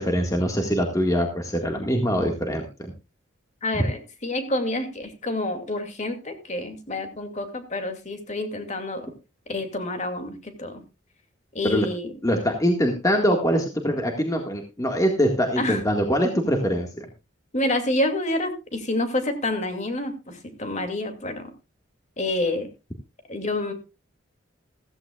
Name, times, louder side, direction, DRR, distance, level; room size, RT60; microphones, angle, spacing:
voice 1, 0.0-2.9 11.6-11.9 12.2-17.1, equal, 15° left, 3 dB, 1.8 m, -23 dB
voice 2, 3.6-9.1 9.5-10.8 11.5-12.1 15.6-15.8 17.5-21.5 22.2-22.7 23.3-23.7, left 1 dB, 35° left, 7 dB, 2.5 m, -28 dB
15.5 x 15.0 x 2.4 m, 0.28 s
head